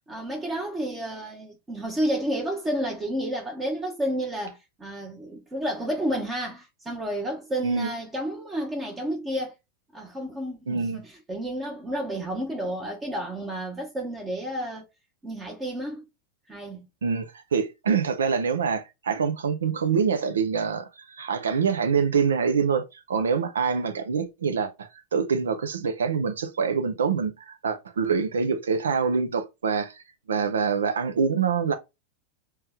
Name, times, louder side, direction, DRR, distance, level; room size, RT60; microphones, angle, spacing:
voice 1, 0.1-9.5 9.9-14.9 15.2-16.0 16.5-16.9, right 1 dB, 15° right, 0.9 m, -31 dB
voice 2, 10.7-11.0 17.0-17.3 17.5-30.0 30.3-31.7, right 6 dB, 65° right, 0.6 m, -25 dB
3.3 x 3.0 x 3.4 m
figure-of-eight pair, 90°, 0 cm